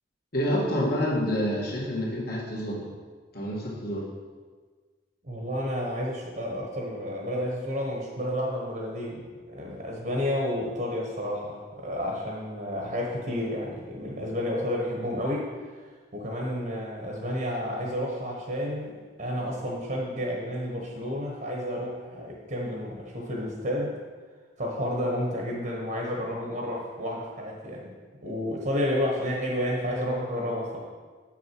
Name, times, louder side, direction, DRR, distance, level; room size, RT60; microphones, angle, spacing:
voice 1, 0.3-2.9 3.3-4.1, equal, 60° left, -4 dB, 1.9 m, -28 dB
voice 2, 5.2-15.5 15.8-15.9 16.1-24.0 24.6-27.9 28.2-30.8, equal, 55° right, -2 dB, 1.3 m, -31 dB
7.0 x 6.1 x 4.6 m, 1.5 s
head